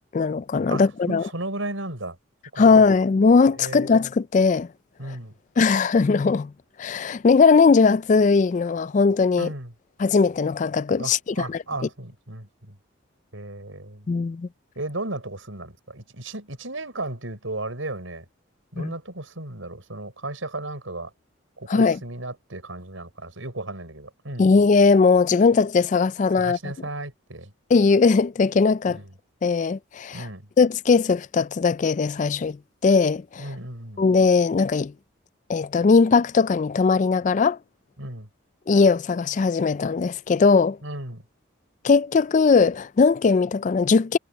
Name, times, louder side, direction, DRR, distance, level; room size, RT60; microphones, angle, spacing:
voice 1, 0.1-1.2 2.6-4.7 5.6-6.5 6.8-9.5 10.0-11.2 11.5-11.6 14.1-14.5 18.8-18.9 21.7-22.0 24.4-26.6 27.7-29.0 29.4-30.2 30.6-32.6 32.8-33.4 34.0-34.9 35.5-37.6 38.7-40.8 41.8-44.2, left 4 dB, 40° left, 0.3 m, -19 dB
voice 2, 0.7-2.2 2.5-2.6 3.6-3.9 5.0-5.3 9.4-9.7 11.0-12.8 13.3-14.1 14.7-18.3 18.7-21.1 21.6-24.5 26.4-27.5 28.9-29.1 30.1-30.5 33.4-34.0 38.0-38.3 40.8-41.2, right 2 dB, 85° right, 6.0 m, -35 dB
head